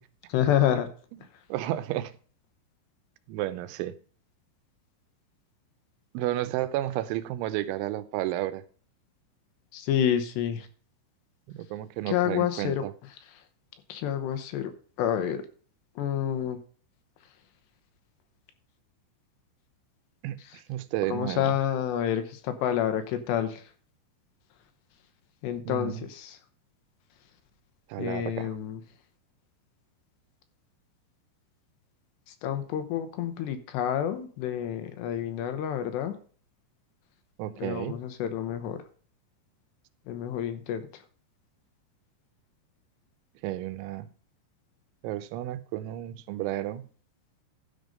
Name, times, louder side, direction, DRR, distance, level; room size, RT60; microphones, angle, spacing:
voice 1, 0.3-0.9 9.7-10.7 12.1-12.8 13.9-14.7 15.0-15.4 16.0-16.6 21.1-23.6 25.4-26.4 28.0-28.8 32.3-36.2 37.6-38.8 40.1-41.0, left 10 dB, 75° left, 2.9 m, -28 dB
voice 2, 1.5-2.1 3.3-4.0 6.1-8.6 11.5-12.9 20.2-21.5 25.7-26.0 27.9-28.6 37.4-38.0 43.4-44.1 45.0-46.9, right 14 dB, 85° right, 3.1 m, -32 dB
12.5 x 5.3 x 5.1 m
omnidirectional pair, 5.3 m